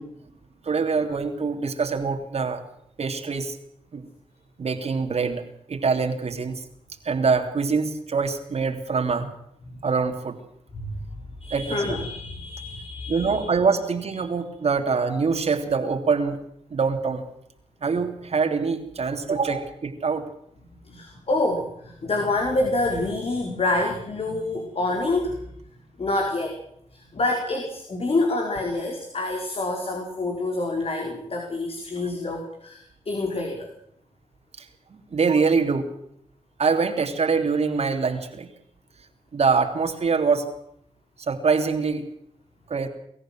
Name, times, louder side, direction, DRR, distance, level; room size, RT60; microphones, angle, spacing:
voice 1, 0.6-2.6 3.0-3.5 3.9-4.0 4.6-5.4 5.7-6.6 7.0-9.3 9.8-10.4 11.5-12.0 13.1-16.4 16.7-17.2 17.8-20.2 34.6-34.7 34.9-35.9 36.6-38.5 39.3-40.4 41.3-42.0 42.7-42.9, right 5 dB, 65° right, 4 dB, 3.3 m, -24 dB
voice 2, 11.4-13.4 19.5-19.6 20.8-25.5 26.0-26.6 26.9-33.7, left 2 dB, 55° left, 2 dB, 4.7 m, -27 dB
23.5 x 14.5 x 7.7 m, 0.71 s
cardioid pair, 65°, 12 cm